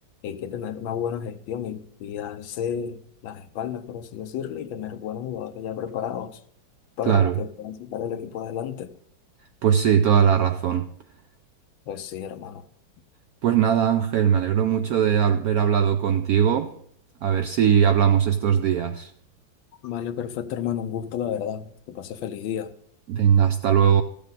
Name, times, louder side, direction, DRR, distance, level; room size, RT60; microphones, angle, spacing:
voice 1, 0.2-6.4 7.0-8.9 11.9-12.6 19.8-22.7, left 9 dB, 85° left, 1.5 m, -32 dB
voice 2, 7.1-7.4 9.6-10.9 13.4-16.7 17.2-19.1 23.1-24.0, right 8 dB, 85° right, 0.8 m, -20 dB
14.5 x 6.7 x 4.0 m
omnidirectional pair, 2.1 m